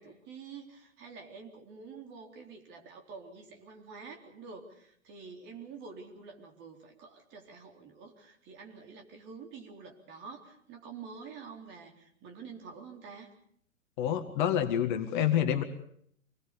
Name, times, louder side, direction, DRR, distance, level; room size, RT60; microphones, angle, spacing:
voice 1, 0.0-13.3, right 5 dB, 25° right, 3 dB, 3.9 m, -48 dB
voice 2, 14.0-15.6, left 10 dB, 35° left, 7 dB, 1.9 m, -27 dB
26.0 x 20.0 x 6.9 m, 0.65 s
figure-of-eight pair, 115°, 41 cm